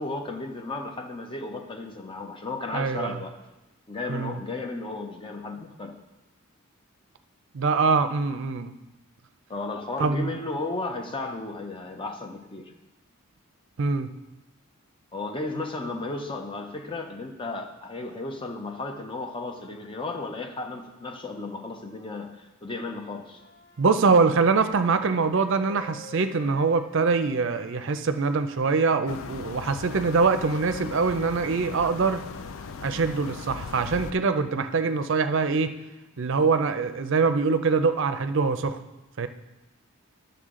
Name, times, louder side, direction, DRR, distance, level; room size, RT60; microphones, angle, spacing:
voice 1, 0.0-3.4 3.9-6.0 9.5-12.7 15.1-23.4, left 2 dB, 25° left, 4 dB, 0.7 m, -34 dB
voice 2, 2.7-3.2 4.1-4.4 7.5-8.7 10.0-10.4 13.8-14.1 23.8-32.2 32.8-35.8 36.2-38.8 39.2-39.3, right 4 dB, 60° right, 10 dB, 0.5 m, -24 dB
Wind instrument woodwind instrument, 23.3-27.9 28.5-33.4, left 2 dB, 40° left, 1.2 m, -49 dB
sound 1, 29.1-34.1, left 5 dB, 65° left, 0.4 m, -39 dB
11.0 x 6.9 x 3.7 m, 1.1 s
head